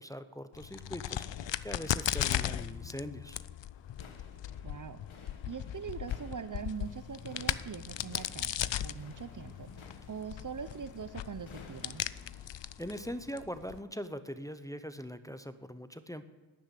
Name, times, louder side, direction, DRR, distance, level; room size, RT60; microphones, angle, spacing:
voice 1, 0.0-3.4 12.4-16.2, equal, 5° left, 10 dB, 0.7 m, -42 dB
Crack, 0.5-13.8, left 11 dB, 65° left, 0.6 m, -37 dB
sound 1, 3.9-12.5, left 4 dB, 85° left, 1.4 m, -55 dB
voice 2, 4.6-12.0, right 6 dB, 45° right, 13 dB, 0.6 m, -43 dB
sound 2, 6.5-12.6, left 2 dB, 40° left, 2.1 m, -58 dB
12.5 x 10.0 x 8.3 m, 1.3 s
wide cardioid pair, 75°, 47 cm